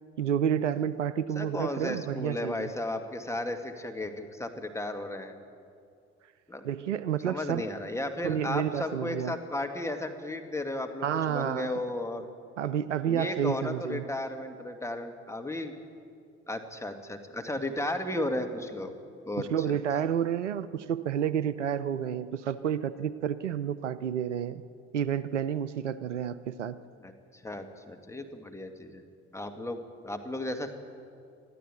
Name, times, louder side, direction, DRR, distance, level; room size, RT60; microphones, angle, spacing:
voice 1, 0.2-2.7 6.6-7.7 8.2-9.4 11.0-11.8 12.6-14.0 19.4-24.6 24.9-26.8, right 9 dB, 80° right, 16 dB, 0.6 m, -30 dB
voice 2, 1.4-5.3 6.5-6.6 7.2-12.3 13.1-15.7 16.5-18.9 19.2-19.5 27.0-29.0 29.3-30.7, left 1 dB, 10° left, 5 dB, 2.2 m, -34 dB
21.5 x 13.5 x 9.2 m, 2.4 s
figure-of-eight pair, 50°, 35 cm